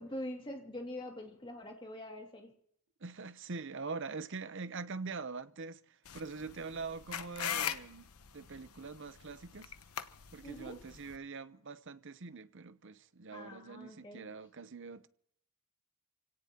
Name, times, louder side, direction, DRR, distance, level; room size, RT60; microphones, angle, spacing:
voice 1, 0.0-2.5 10.4-10.8 13.3-14.4, left 1 dB, 20° left, 2.4 m, -44 dB
voice 2, 3.0-9.7 10.3-15.1, right 4 dB, 55° right, 0.8 m, -44 dB
sound 1, 6.1-11.2, left 8 dB, 80° left, 1.0 m, -41 dB
27.5 x 17.5 x 2.9 m
head